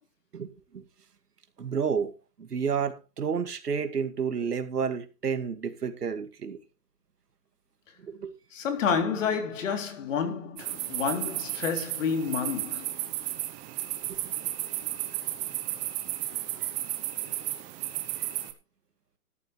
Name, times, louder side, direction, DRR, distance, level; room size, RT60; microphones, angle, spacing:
voice 1, 0.3-0.8 1.6-2.1 2.4-6.6 8.1-8.3, right 6 dB, 85° right, 2.4 m, -30 dB
voice 2, 8.5-12.9, left 6 dB, 55° left, 3.6 m, -29 dB
sound 1, 10.6-18.5, right 15 dB, 15° right, 1.0 m, -33 dB
13.5 x 11.0 x 3.3 m
hypercardioid pair, 150°, 46 cm